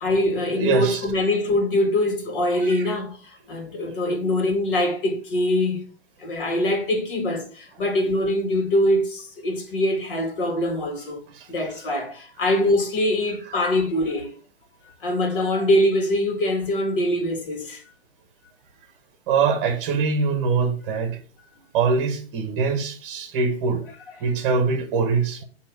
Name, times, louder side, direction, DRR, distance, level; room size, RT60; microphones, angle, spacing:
voice 1, 0.0-5.9 6.2-14.3 15.0-17.8, left 1 dB, 50° left, 2.0 m, -23 dB
voice 2, 0.6-1.0 2.6-2.9 4.2-4.3 11.3-11.5 12.5-12.6 19.3-21.2 21.7-23.8 24.2-25.4, right 5 dB, 25° right, 1.1 m, -23 dB
8.6 x 3.0 x 4.8 m
hypercardioid pair, 155°, 33 cm